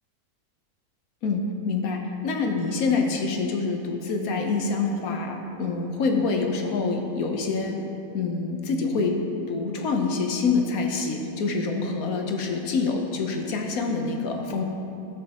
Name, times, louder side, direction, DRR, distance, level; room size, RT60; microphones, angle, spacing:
voice 1, 1.2-7.9 8.1-9.2 9.5-14.6, left 4 dB, 70° left, 3 dB, 1.3 m, -26 dB
13.0 x 7.7 x 2.9 m, 2.7 s
omnidirectional pair, 1.6 m